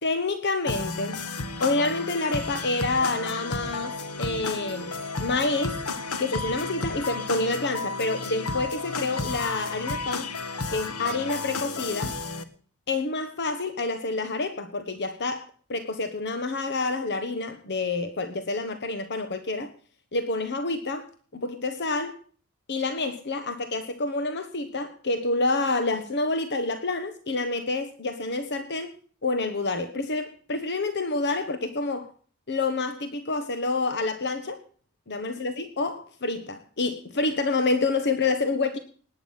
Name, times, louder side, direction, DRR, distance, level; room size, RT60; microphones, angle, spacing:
voice 1, 0.0-1.2 1.6-4.9 5.2-5.8 6.2-10.3 10.7-12.2 12.9-19.7 20.1-21.1 21.3-22.2 22.7-28.9 29.2-32.1 32.5-34.6 35.1-38.8, left 3 dB, 50° left, 9 dB, 1.3 m, -28 dB
sound 1, 0.7-12.4, left 3 dB, 85° left, 1.4 m, -32 dB
19.0 x 9.5 x 5.8 m, 0.43 s
head